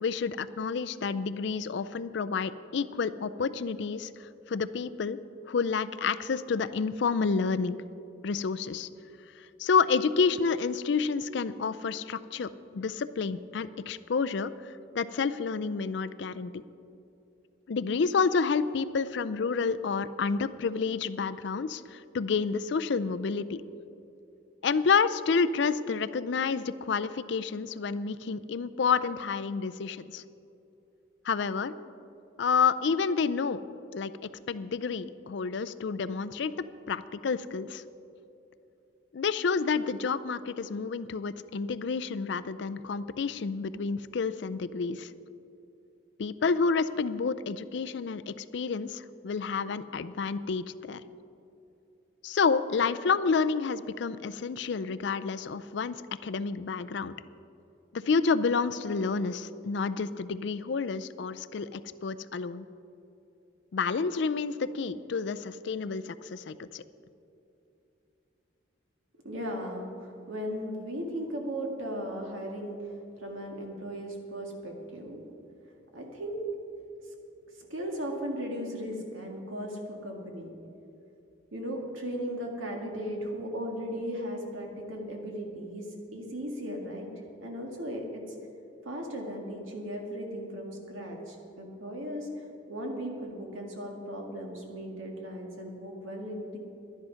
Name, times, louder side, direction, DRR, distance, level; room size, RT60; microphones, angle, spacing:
voice 1, 0.0-5.2 5.5-7.8 8.2-8.9 9.6-14.5 14.9-16.6 17.7-23.6 24.6-30.2 31.2-31.7 32.4-33.6 33.9-34.1 34.5-37.8 39.1-45.1 46.2-51.0 52.2-56.0 56.2-57.1 57.9-62.7 63.7-66.8, left 5 dB, 65° left, 13 dB, 0.4 m, -29 dB
voice 2, 69.2-75.2 75.9-76.4 77.6-80.5 81.5-87.1 87.4-88.2 88.9-96.6, equal, 90° right, 1 dB, 2.0 m, -37 dB
12.0 x 10.5 x 5.7 m, 2.8 s
head